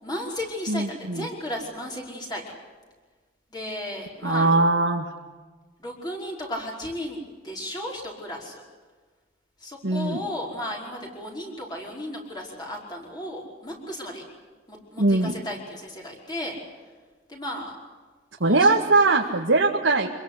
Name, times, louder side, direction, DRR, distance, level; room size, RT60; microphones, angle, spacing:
voice 1, 0.0-2.4 3.5-4.5 5.8-8.6 9.6-14.2 14.7-16.6 17.3-17.7 18.4-18.7 19.2-19.4, left 1 dB, 20° left, -1 dB, 5.2 m, -34 dB
voice 2, 0.7-1.3 4.2-5.1 9.8-10.2 15.0-15.4 18.4-20.1, right 3 dB, 75° right, 0 dB, 1.9 m, -21 dB
25.5 x 22.0 x 8.4 m, 1.4 s
head